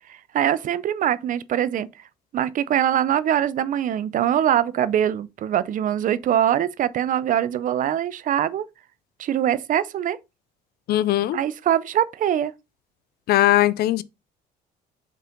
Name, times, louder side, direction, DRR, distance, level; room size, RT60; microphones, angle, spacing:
voice 1, 0.1-1.9 2.3-8.6 9.2-10.2 11.3-12.5, right 10 dB, 50° right, 0.6 m, -23 dB
voice 2, 10.9-11.4 13.3-14.0, left 15 dB, 65° left, 0.5 m, -19 dB
5.4 x 5.1 x 3.8 m
cardioid pair, 110°, 17 cm